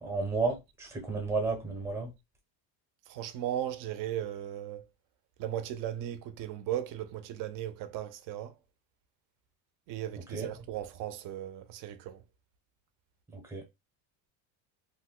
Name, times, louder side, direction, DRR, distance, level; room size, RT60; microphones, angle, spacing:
voice 1, 0.0-2.1 10.3-10.5 13.3-13.6, right 3 dB, 5° right, 0.6 m, -32 dB
voice 2, 3.1-4.9 5.4-8.5 9.9-12.2, right 11 dB, 50° right, 0.5 m, -37 dB
2.6 x 2.1 x 3.6 m
cardioid pair, 165°, 44 cm